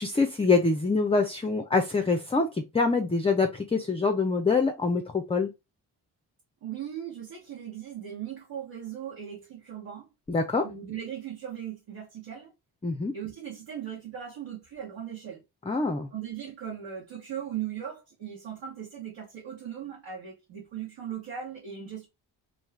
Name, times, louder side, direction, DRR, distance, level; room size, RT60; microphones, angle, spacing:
voice 1, 0.0-5.5 10.3-10.6 12.8-13.1 15.7-16.1, left 4 dB, 15° left, 0.4 m, -25 dB
voice 2, 6.6-10.1 10.6-12.5 13.1-15.4 16.1-22.1, right 9 dB, 65° right, 1.1 m, -38 dB
2.6 x 2.3 x 3.1 m
supercardioid pair, 45°, 48 cm